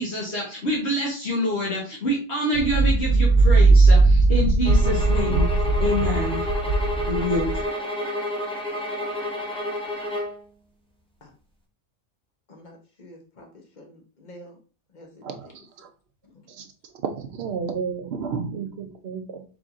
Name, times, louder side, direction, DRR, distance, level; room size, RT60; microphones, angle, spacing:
voice 1, 0.0-5.5 5.8-6.5 7.1-7.7, equal, 60° left, 1.5 m, -26 dB
sound 1, 2.5-7.6, right 3 dB, 85° right, 1.2 m, -18 dB
sound 2, 4.6-10.4, left 1 dB, 5° left, 0.7 m, -30 dB
voice 2, 12.5-14.6 14.9-15.6 16.3-16.4, equal, 40° left, 1.1 m, -48 dB
voice 3, 17.0-19.4, right 6 dB, 60° right, 0.9 m, -31 dB
4.8 x 3.6 x 2.6 m
omnidirectional pair, 1.3 m